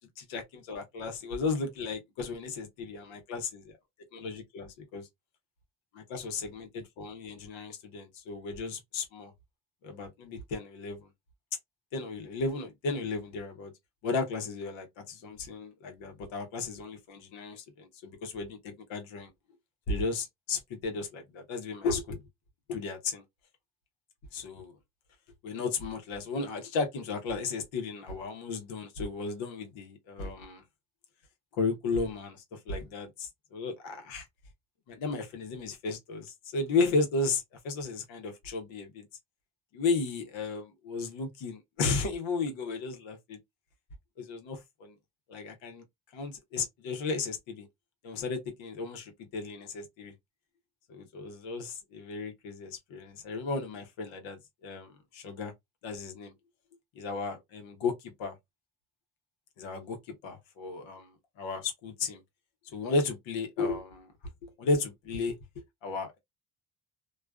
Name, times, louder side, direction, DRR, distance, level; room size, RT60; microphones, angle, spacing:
voice 1, 0.2-3.8 4.1-5.1 5.9-9.3 9.8-11.1 11.9-13.7 14.0-19.3 19.9-22.2 22.7-23.2 24.3-24.7 25.4-30.6 31.6-34.3 34.9-39.1 39.7-43.4 44.2-45.0 45.3-45.8 46.1-47.7 48.0-50.1 50.9-55.5 55.8-56.3 56.9-58.3 59.6-62.2 62.7-64.1 64.4-65.4 65.8-66.2, left 4 dB, 85° left, 0.8 m, -34 dB
2.3 x 2.3 x 2.3 m
supercardioid pair, 55°, 45 cm